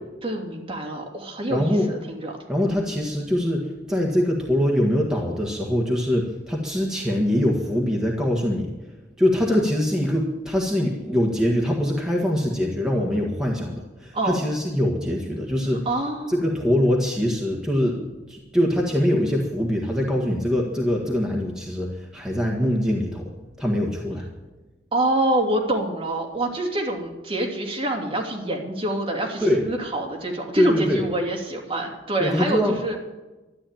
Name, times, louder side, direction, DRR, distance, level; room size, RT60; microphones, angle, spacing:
voice 1, 0.2-2.3 14.1-14.4 15.8-16.3 24.9-33.0, right 1 dB, 30° right, 0 dB, 2.8 m, -26 dB
voice 2, 1.5-1.9 2.5-8.7 9.2-15.9 16.3-18.0 18.3-23.3 23.6-24.3 29.4-29.6 30.5-31.1 32.2-32.8, equal, 5° right, -1 dB, 1.7 m, -23 dB
13.5 x 11.0 x 9.0 m, 1.1 s
head